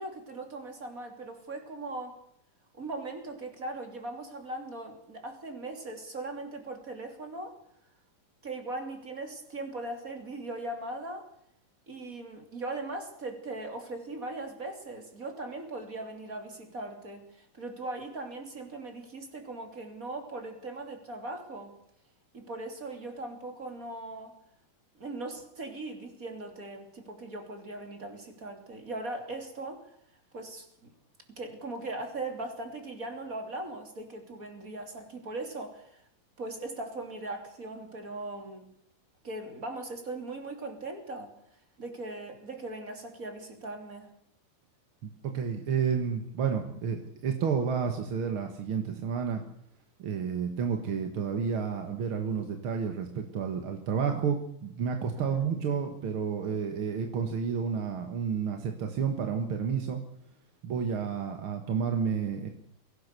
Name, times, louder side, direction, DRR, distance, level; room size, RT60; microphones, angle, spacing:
voice 1, 0.0-2.2 2.7-7.6 8.4-11.3 11.9-21.7 22.3-24.3 25.0-29.8 30.3-30.7 31.3-36.0 36.4-38.7 39.2-41.3 41.8-44.1 55.2-55.4, right 2 dB, 25° right, 5 dB, 3.0 m, -39 dB
voice 2, 45.0-49.4 50.0-60.0 60.6-62.5, right 6 dB, 50° right, 5 dB, 1.8 m, -30 dB
22.5 x 17.5 x 6.8 m, 0.67 s
omnidirectional pair, 4.0 m